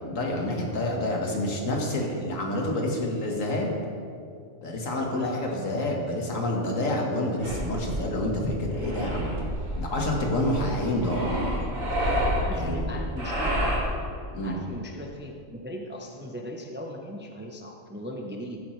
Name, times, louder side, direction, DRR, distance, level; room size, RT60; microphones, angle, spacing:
voice 1, 0.1-3.7 4.6-9.3 9.8-11.3 12.5-12.9 14.3-14.6, left 1 dB, 75° left, -1 dB, 1.9 m, -28 dB
voice 2, 5.1-5.7 11.7-11.9 12.3-13.7 14.4-18.6, equal, 10° right, 1 dB, 0.6 m, -38 dB
sound 1, 7.4-13.8, equal, 85° right, 2.5 m, -29 dB
15.0 x 8.0 x 3.2 m, 2.3 s
omnidirectional pair, 1.4 m